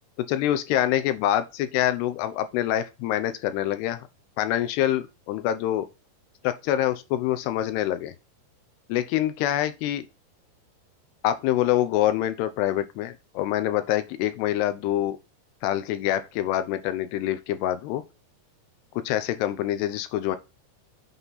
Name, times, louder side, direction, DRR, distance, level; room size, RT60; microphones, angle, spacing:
voice 1, 0.3-4.1 4.4-5.9 6.4-8.1 8.9-10.1 11.2-15.2 15.6-18.0 19.0-20.4, left 12 dB, 75° left, 2.8 m, -25 dB
8.1 x 5.4 x 4.1 m
omnidirectional pair, 5.1 m